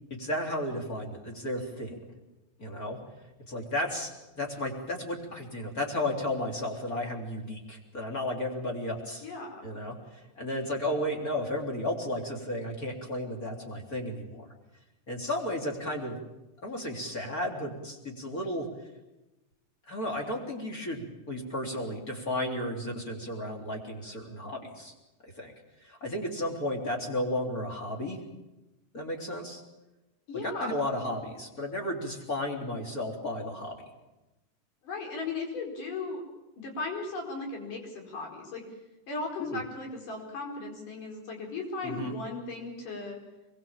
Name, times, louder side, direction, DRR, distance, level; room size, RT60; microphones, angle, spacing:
voice 1, 0.1-2.0 2.6-3.0 3.5-9.3 9.6-14.5 15.1-16.2 16.6-18.7 19.9-24.9 25.2-25.5 25.8-28.2 28.9-29.6 30.4-33.8 39.4-39.6 41.8-42.1, left 1 dB, 25° left, 2 dB, 3.9 m, -33 dB
voice 2, 9.2-9.7 30.3-30.7 34.8-36.2 36.6-38.6 39.1-43.2, left 3 dB, 85° left, 1 dB, 6.3 m, -36 dB
24.5 x 22.0 x 7.4 m, 1.0 s
omnidirectional pair, 3.6 m